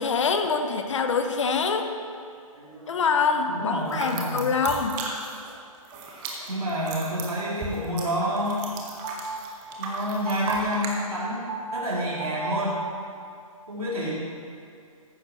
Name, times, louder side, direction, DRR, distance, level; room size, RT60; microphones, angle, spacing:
voice 1, 0.0-1.9 2.9-5.0, left 5 dB, 55° left, 6 dB, 1.1 m, -25 dB
voice 2, 2.5-3.0 3.5-4.6 5.9-6.0 6.4-8.6 9.8-11.5 11.7-12.8 13.7-14.1, equal, 85° right, -8 dB, 3.1 m, -29 dB
sound 1, 3.9-5.5 5.8-10.9, right 4 dB, 20° right, 1.4 m, -35 dB
sound 2, 8.3-13.5, right 3 dB, 60° right, 1.4 m, -37 dB
14.5 x 10.5 x 3.2 m, 2.3 s
figure-of-eight pair, 130°, 18 cm